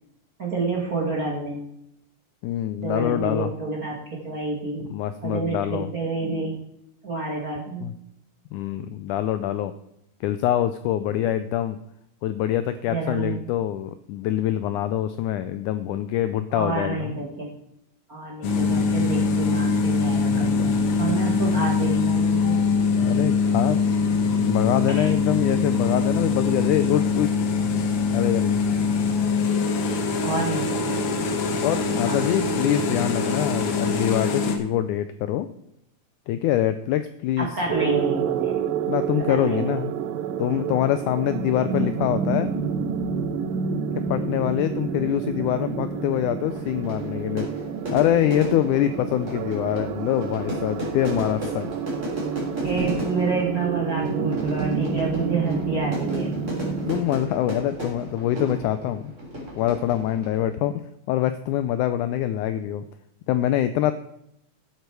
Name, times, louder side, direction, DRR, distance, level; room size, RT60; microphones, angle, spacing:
voice 1, 0.4-1.6 2.7-4.0 4.2-4.8 5.2-6.5 7.0-7.9 11.2-11.3 12.9-13.4 16.5-17.5 18.1-22.6 24.9-25.1 30.2-31.0 32.1-32.5 37.4-38.5 39.3-39.8 52.6-56.3, right 3 dB, 40° right, -3 dB, 1.4 m, -28 dB
voice 2, 2.4-3.5 4.8-5.9 7.8-7.9 8.5-9.7 10.2-11.8 12.2-17.1 20.3-20.7 23.0-23.8 24.4-27.4 28.1-28.6 31.6-35.5 36.3-37.5 38.9-39.9 40.4-42.5 44.1-47.5 47.9-51.7 56.9-59.1 59.6-62.9 63.3-63.9, left 12 dB, 85° left, 12 dB, 1.8 m, -25 dB
sound 1, 18.4-34.6, left 4 dB, 60° left, 1.6 m, -23 dB
sound 2, 37.7-57.0, right 6 dB, 85° right, 2.4 m, -29 dB
Fire / Fireworks, 46.5-60.5, equal, 20° right, 3.7 m, -34 dB
11.0 x 8.1 x 4.7 m, 0.78 s
omnidirectional pair, 4.1 m